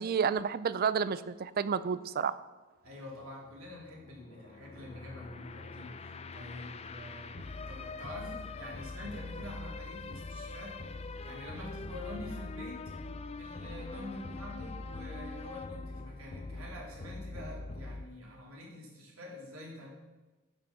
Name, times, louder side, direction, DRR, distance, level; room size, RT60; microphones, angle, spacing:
voice 1, 0.0-2.3, right 6 dB, 45° right, 15 dB, 0.4 m, -30 dB
voice 2, 2.8-10.8 11.0-12.8 13.4-19.9, left 1 dB, 85° right, -2 dB, 3.0 m, -46 dB
sound 1, 2.9-18.1, left 3 dB, 30° left, 0.4 m, -43 dB
11.5 x 6.4 x 5.6 m, 1.2 s
head